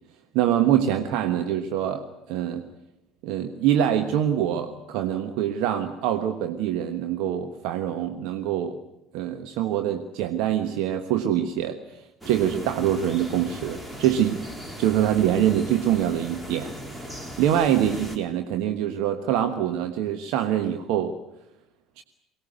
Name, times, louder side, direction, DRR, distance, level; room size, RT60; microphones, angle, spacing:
voice 1, 0.3-2.7 3.2-8.8 9.1-11.8 12.2-14.4 14.8-16.7 17.1-21.1 22.0-22.1, right 10 dB, 60° right, 7 dB, 1.3 m, -24 dB
sound 1, 12.2-18.2, equal, 15° right, 4.1 m, -38 dB
23.0 x 19.0 x 9.3 m, 0.90 s
figure-of-eight pair, 60°, 0 cm